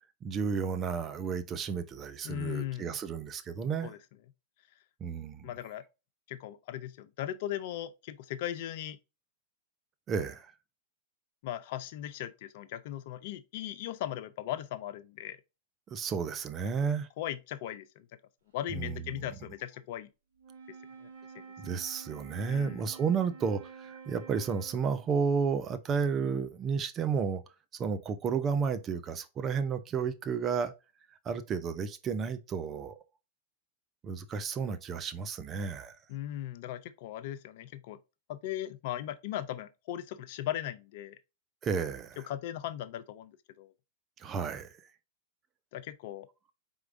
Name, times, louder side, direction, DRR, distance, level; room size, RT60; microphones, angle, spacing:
voice 1, 0.2-3.9 5.0-5.5 10.1-10.5 15.9-17.1 18.7-19.3 21.6-27.4 27.7-30.7 31.2-33.0 34.0-36.0 41.6-42.2 44.2-44.8, right 6 dB, 30° right, 0.6 m, -32 dB
voice 2, 2.2-3.0 3.8-4.0 5.4-5.8 6.3-9.0 11.4-15.4 17.2-18.1 18.5-20.1 20.7-20.8 21.0-21.1 21.3-21.4 22.5-22.8 36.1-38.0 38.3-41.2 42.3-43.7 45.7-46.3, left 12 dB, 55° left, 0.5 m, -38 dB
Wind instrument woodwind instrument, 20.4-25.2, right 5 dB, 70° right, 1.1 m, -49 dB
4.6 x 3.6 x 2.6 m
hypercardioid pair, 105°, 0 cm